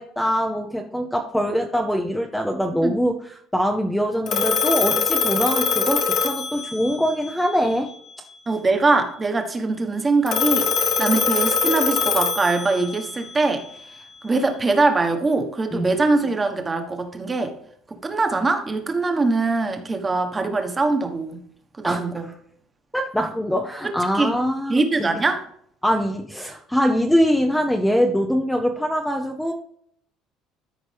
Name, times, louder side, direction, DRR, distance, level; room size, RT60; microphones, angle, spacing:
voice 1, 0.0-7.9 15.7-15.9 21.8-22.0 22.9-25.1 25.8-29.5, equal, 5° left, 3 dB, 0.7 m, -23 dB
Telephone, 4.3-7.1 10.3-13.1, left 5 dB, 45° left, 1.3 m, -23 dB
voice 2, 8.5-13.6 14.2-17.5 17.9-21.4 21.8-22.3 24.1-24.3 24.7-25.4, right 3 dB, 20° right, 5 dB, 1.3 m, -22 dB
13.5 x 5.0 x 3.4 m, 0.66 s
cardioid pair, 135°, 0 cm